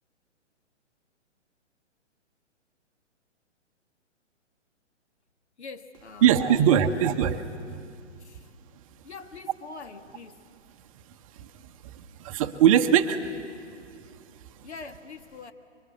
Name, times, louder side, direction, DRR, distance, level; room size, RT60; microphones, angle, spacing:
voice 1, 5.6-7.3 8.2-8.5 9.0-10.4 14.6-15.5, left 4 dB, 65° left, 1.8 m, -44 dB
voice 2, 6.2-7.4 11.4-13.2, right 9 dB, 30° right, 0.8 m, -22 dB
24.5 x 24.0 x 8.3 m
figure-of-eight pair, 125°, 37 cm